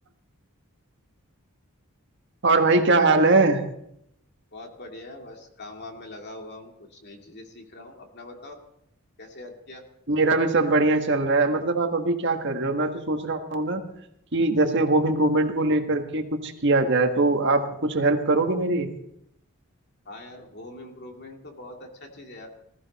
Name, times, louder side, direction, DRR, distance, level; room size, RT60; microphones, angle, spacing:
voice 1, 2.4-3.6 10.1-13.8 14.3-18.9, right 2 dB, 55° right, 5 dB, 1.5 m, -22 dB
voice 2, 4.5-8.6 9.2-9.8 20.1-22.5, left 2 dB, 50° left, 2 dB, 2.4 m, -43 dB
19.5 x 14.0 x 4.2 m, 0.78 s
head